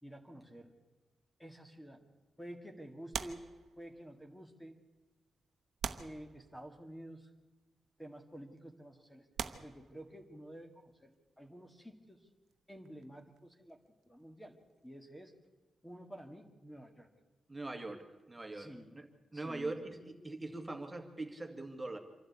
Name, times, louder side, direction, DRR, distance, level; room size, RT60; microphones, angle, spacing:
voice 1, 0.0-0.8 1.4-2.0 2.4-3.5 3.8-4.8 6.0-7.3 8.0-9.3 9.6-12.3 12.7-14.6 14.8-15.3 15.8-17.1 18.5-19.0 19.3-19.8, equal, 10° left, 4 dB, 2.0 m, -50 dB
sound 1, 3.1-4.2 5.0-5.1 5.8-6.9 7.9-8.1 8.7-8.8 9.3-10.6 12.5-14.3 14.5-14.7, right 8 dB, 85° right, 0.9 m, -44 dB
voice 2, 17.5-19.1 19.3-22.0, right 2 dB, 20° right, 4 dB, 2.1 m, -42 dB
26.5 x 12.0 x 8.3 m, 1.2 s
cardioid pair, 80°, 0 cm